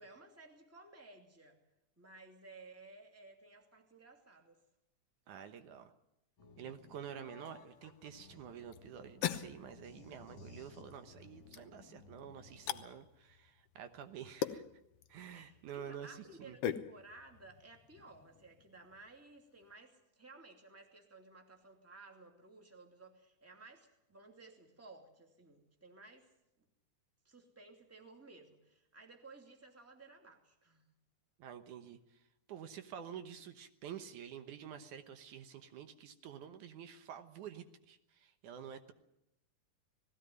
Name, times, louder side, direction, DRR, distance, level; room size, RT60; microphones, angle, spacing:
voice 1, 0.0-1.6 2.0-4.6 15.3-26.3 26.6-26.7 27.2-30.9, right 3 dB, 5° right, 3 dB, 2.2 m, -57 dB
voice 2, 5.3-5.9 6.6-14.6 15.1-16.6 31.4-32.0 32.5-38.9, right 8 dB, 75° right, 9 dB, 2.6 m, -49 dB
sound 1, 6.4-12.9, left 4 dB, 45° left, 2.2 m, -58 dB
sound 2, 7.8-19.7, left 10 dB, 70° left, 1.5 m, -45 dB
19.5 x 16.5 x 9.3 m, 0.85 s
omnidirectional pair, 3.6 m